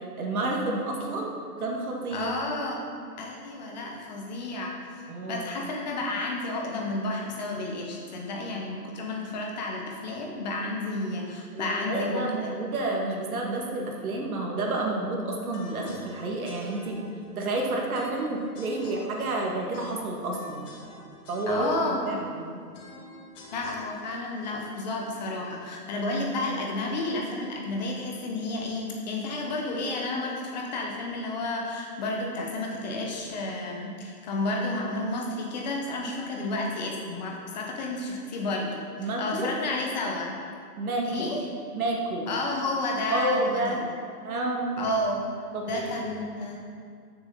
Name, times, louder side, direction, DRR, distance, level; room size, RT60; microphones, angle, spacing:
voice 1, 0.2-2.3 5.1-5.6 11.5-17.0 17.4-20.7 21.3-21.7 22.1-22.6 39.0-39.5 40.8-41.3 41.7-42.3 43.1-43.8 44.2-44.8 45.5-46.1, right 2 dB, 60° right, -1 dB, 2.2 m, -30 dB
voice 2, 2.1-2.8 3.2-4.8 5.3-12.5 21.5-22.2 23.5-40.4 41.0-41.4 42.3-43.8 44.8-45.2 45.6-46.6, left 2 dB, 25° left, 0 dB, 0.9 m, -31 dB
sound 1, 15.5-25.6, left 2 dB, 45° left, 2.0 m, -50 dB
13.0 x 7.0 x 4.1 m, 2.3 s
hypercardioid pair, 150°, 49 cm